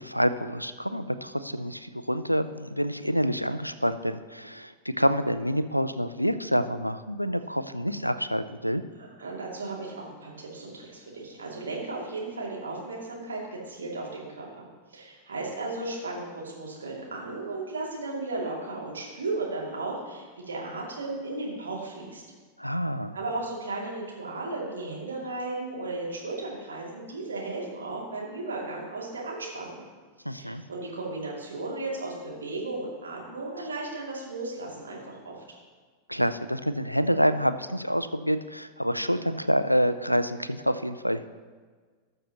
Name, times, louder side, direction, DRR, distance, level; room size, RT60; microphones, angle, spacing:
voice 1, 0.0-8.8 22.6-23.2 30.2-30.6 36.1-41.3, equal, 90° left, 12 dB, 0.4 m, -27 dB
voice 2, 9.0-14.6 14.9-22.2 23.1-29.8 30.4-35.4, right 2 dB, 70° right, -3 dB, 2.7 m, -35 dB
19.0 x 6.6 x 3.0 m, 1.5 s
figure-of-eight pair, 90°, 0 cm